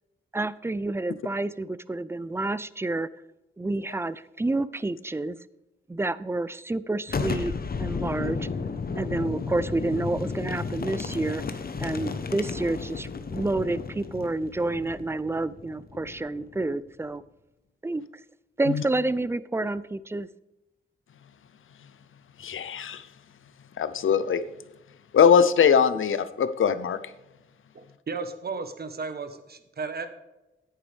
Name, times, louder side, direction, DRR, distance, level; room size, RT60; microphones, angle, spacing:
voice 1, 0.3-3.1 3.6-5.4 5.9-7.5 7.8-8.5 9.0-11.4 11.8-17.2 17.8-18.0 18.6-20.3, right 2 dB, 10° right, 17 dB, 0.4 m, -29 dB
Boom, 7.1-16.7, left 4 dB, 50° left, 1.0 m, -33 dB
voice 2, 22.4-23.0 23.8-24.4 25.1-27.0, left 7 dB, 80° left, 13 dB, 0.7 m, -21 dB
voice 3, 27.7-30.1, right 4 dB, 50° right, 9 dB, 1.1 m, -34 dB
10.0 x 9.3 x 3.4 m, 1.0 s
wide cardioid pair, 95°, 20 cm